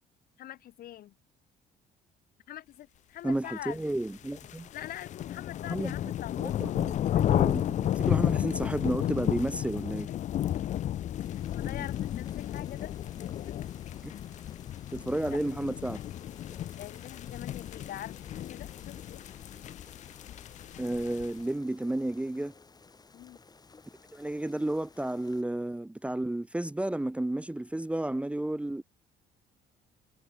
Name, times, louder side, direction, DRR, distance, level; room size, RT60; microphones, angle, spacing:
voice 1, 0.4-1.2 2.5-3.9 4.7-6.6 10.1-10.6 11.3-12.9 13.5-13.8 15.2-15.4 16.7-19.2 23.1-23.4, left 13 dB, 60° left, 1.1 m, -44 dB
voice 2, 3.2-4.7 5.7-5.9 6.4-10.1 14.0-14.1 14.9-16.0 20.8-22.5 24.1-28.8, right 1 dB, 5° right, 0.6 m, -32 dB
sound 1, 3.9-21.4, left 12 dB, 45° left, 0.4 m, -33 dB
sound 2, 11.2-25.4, left 4 dB, 25° left, 6.1 m, -56 dB
cardioid pair, 110°, 17 cm